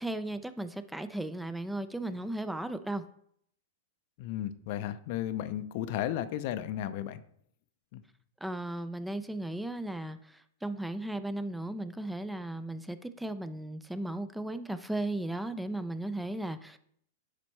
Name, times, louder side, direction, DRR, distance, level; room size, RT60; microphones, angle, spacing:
voice 1, 0.0-3.1 8.4-16.8, right 1 dB, 5° right, 12 dB, 0.4 m, -36 dB
voice 2, 4.2-7.2 7.9-8.0, left 11 dB, 55° left, 12 dB, 0.5 m, -34 dB
9.9 x 4.2 x 3.2 m, 0.67 s
hypercardioid pair, 115°, 0 cm